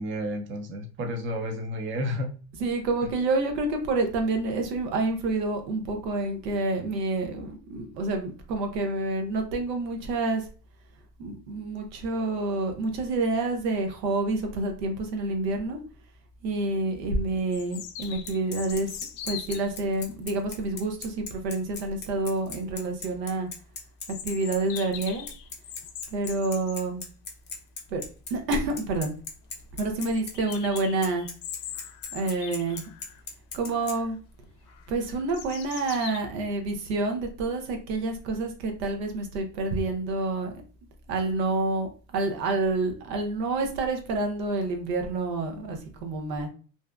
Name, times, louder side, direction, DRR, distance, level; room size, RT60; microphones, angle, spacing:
voice 1, 0.0-2.3, equal, 25° right, 3 dB, 0.6 m, -31 dB
voice 2, 2.6-10.4 11.2-15.8 16.4-18.9 19.3-23.5 24.2-25.3 26.1-27.0 27.9-28.0 28.3-29.1 29.8-31.3 32.1-32.9 33.5-34.2 34.9-40.5 41.1-46.5, right 2 dB, 85° right, 4 dB, 0.8 m, -28 dB
sound 1, 16.5-16.6 17.5-19.7 24.1-26.8 28.4-28.5 28.8-28.9 29.2-29.3 30.0-33.2 33.6-34.1 34.7-36.2, left 9 dB, 75° left, 0.5 m, -42 dB
Bicycle, 18.0-33.9, left 5 dB, 25° left, 0.5 m, -38 dB
2.7 x 2.1 x 2.3 m, 0.37 s
hypercardioid pair, 90°, 48 cm